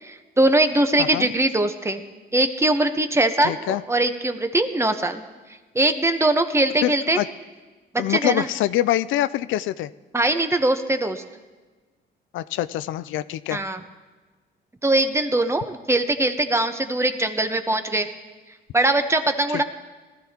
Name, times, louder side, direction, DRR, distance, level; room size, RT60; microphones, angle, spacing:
voice 1, 0.0-2.0 2.3-5.2 5.7-7.2 8.1-8.5 10.1-11.2 13.5-13.8 14.8-18.1 18.7-19.6, right 2 dB, 15° right, 7 dB, 1.0 m, -21 dB
voice 2, 3.4-3.8 6.8-7.3 8.0-9.9 12.3-13.6, left 13 dB, 80° left, 15 dB, 0.4 m, -25 dB
19.5 x 13.0 x 2.9 m, 1.3 s
cardioid pair, 90°, 20 cm